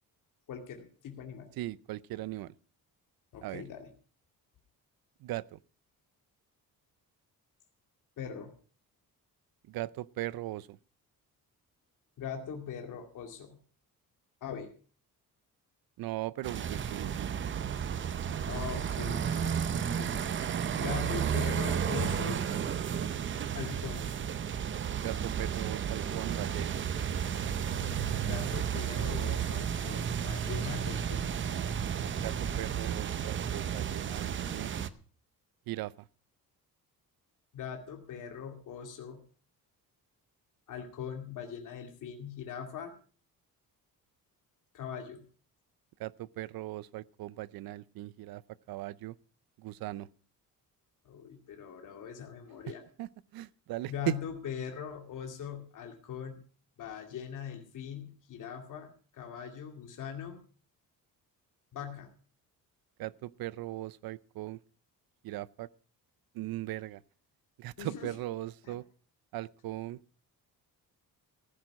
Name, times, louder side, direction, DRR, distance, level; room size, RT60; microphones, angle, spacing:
voice 1, 0.5-1.5 3.3-3.9 8.2-8.5 12.2-13.6 14.4-14.7 18.5-20.3 20.8-22.5 23.5-24.1 28.2-31.3 37.5-39.2 40.7-42.9 44.7-45.3 51.0-52.8 53.9-56.4 56.8-60.4 61.7-62.1 67.8-68.1 68.6-68.7, left 8 dB, 60° left, 2.3 m, -41 dB
voice 2, 1.6-2.5 3.4-3.6 5.2-5.6 9.7-10.8 16.0-17.3 25.0-26.8 32.2-34.7 35.7-35.9 46.0-48.4 48.7-49.2 49.6-50.1 53.0-54.1 63.0-64.6 65.2-65.7 66.3-67.0 67.6-68.8 69.3-70.0, right 16 dB, 90° right, 0.6 m, -38 dB
sound 1, 16.4-34.9, right 8 dB, 35° right, 0.6 m, -32 dB
15.5 x 10.5 x 5.7 m
cardioid pair, 180°, 35 cm